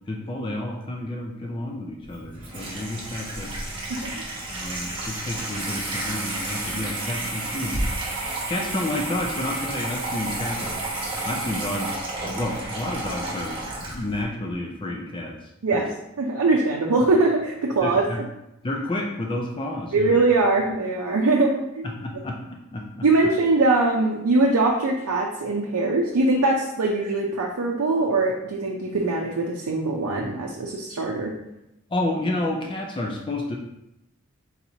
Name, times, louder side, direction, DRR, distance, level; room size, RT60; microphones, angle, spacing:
voice 1, 0.1-3.5 4.5-7.8 8.5-10.7 11.2-15.9 17.8-18.2 18.6-20.2 21.8-23.0 31.9-33.6, left 1 dB, 20° left, 1 dB, 0.4 m, -30 dB
Water tap faucet / Sink (filling or washing), 2.0-14.2, right 2 dB, 25° right, 0.8 m, -31 dB
voice 2, 3.9-4.2 15.6-15.9 16.2-18.0 19.9-21.9 23.0-31.3, right 2 dB, 85° right, -2 dB, 0.5 m, -22 dB
4.3 x 4.0 x 2.7 m, 0.86 s
head